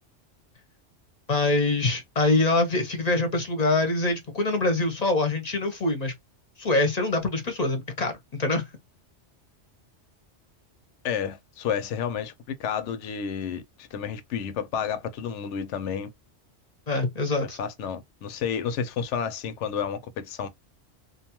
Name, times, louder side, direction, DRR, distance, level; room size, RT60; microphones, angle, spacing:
voice 1, 1.3-6.1 6.6-8.1 8.4-8.6 16.9-17.6, left 2 dB, 40° left, 0.7 m, -24 dB
voice 2, 11.0-16.1 17.6-20.5, left 7 dB, 80° left, 0.9 m, -31 dB
2.6 x 2.3 x 2.8 m
omnidirectional pair, 1.2 m